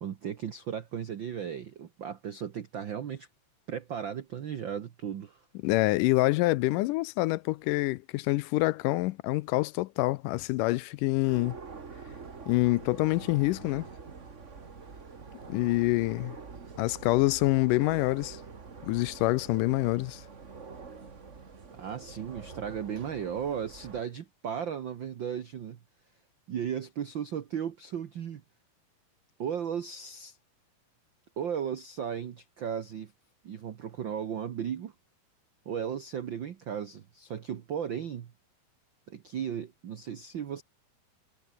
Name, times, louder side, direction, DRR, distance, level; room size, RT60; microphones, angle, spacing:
voice 1, 0.0-3.3 3.7-5.4 21.8-25.8 26.5-28.4 29.4-30.4 31.4-33.1 33.4-34.9 35.6-38.3 39.1-40.6, right 8 dB, 80° right, 1.0 m, -35 dB
voice 2, 5.6-11.6 12.5-13.9 15.5-16.4 16.8-18.4 18.8-20.2, left 20 dB, 80° left, 2.1 m, -26 dB
sound 1, 11.2-24.0, right 5 dB, 30° right, 1.5 m, -46 dB
omnidirectional pair, 3.9 m